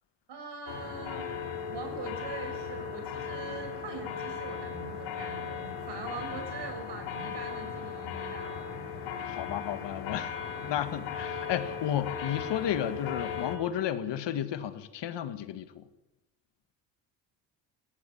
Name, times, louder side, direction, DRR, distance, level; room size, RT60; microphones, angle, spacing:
voice 1, 0.3-1.3 1.7-9.0, right 4 dB, 60° right, 6 dB, 6.7 m, -42 dB
sound 1, 0.7-13.6, left 6 dB, 80° left, 4.1 m, -37 dB
voice 2, 9.2-10.3 10.7-15.8, left 10 dB, 65° left, 10 dB, 1.9 m, -32 dB
18.0 x 16.0 x 9.3 m, 0.97 s
supercardioid pair, 80°, 46 cm